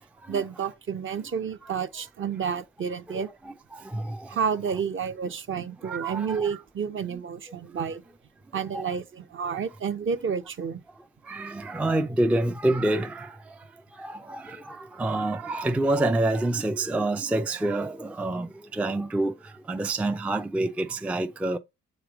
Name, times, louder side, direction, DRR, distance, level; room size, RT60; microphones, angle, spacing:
voice 1, 0.3-3.3 4.3-8.0 8.5-10.8, right 6 dB, 40° right, 0.7 m, -30 dB
voice 2, 5.8-6.5 8.7-8.9 11.3-13.3 14.0-19.3 19.7-21.6, right 2 dB, 5° right, 0.3 m, -27 dB
7.0 x 3.1 x 4.8 m
cardioid pair, 90°, 30 cm